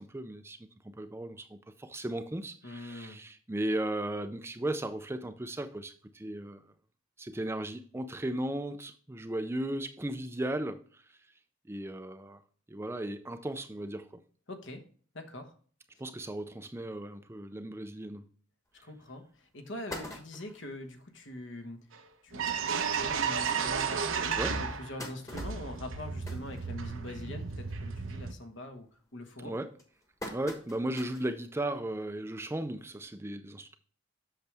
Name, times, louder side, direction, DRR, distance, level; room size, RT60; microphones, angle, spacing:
voice 1, 0.0-6.6 7.2-11.2 11.7-12.4 12.7-14.2 16.0-18.3 24.4-24.6 29.4-29.7 30.3-33.8, right 1 dB, 10° right, 0.4 m, -36 dB
voice 2, 2.6-3.2 14.5-14.8 15.1-15.5 18.8-21.8 22.2-28.9 29.1-29.5, left 1 dB, 65° left, 1.3 m, -43 dB
sound 1, 18.8-18.9 19.3-19.4 19.7-20.7 21.3-21.4 21.7-21.8 22.1-22.3 23.0-23.1 23.6-23.7 24.4-27.3 27.6-28.0 28.3-28.7 29.3-31.4 31.8-31.9 33.1-33.2, left 1 dB, 15° left, 1.2 m, -45 dB
sound 2, 21.9-22.0 22.3-25.0 25.3-28.3, right 6 dB, 80° right, 0.9 m, -33 dB
8.1 x 6.5 x 3.4 m
head